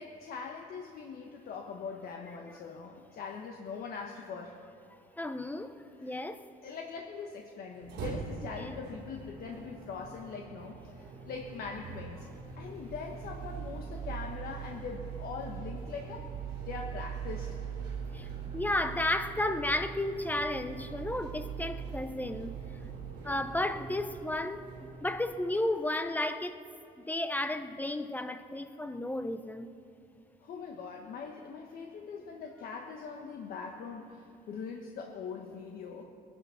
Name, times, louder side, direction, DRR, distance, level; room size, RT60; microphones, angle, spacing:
voice 1, 0.0-4.6 6.0-6.2 6.6-12.2 12.6-16.3 16.7-17.6 30.4-36.0, left 5 dB, 60° left, 2 dB, 1.3 m, -42 dB
voice 2, 5.2-5.7 6.0-6.4 8.6-8.7 18.1-18.3 18.5-22.6 23.2-24.6 25.0-26.6 27.0-29.7, left 1 dB, 10° left, 9 dB, 0.8 m, -33 dB
sound 1, 7.7-25.9, right 6 dB, 85° right, 4.0 m, -42 dB
21.0 x 11.0 x 5.7 m, 2.5 s
cardioid pair, 110°, 17 cm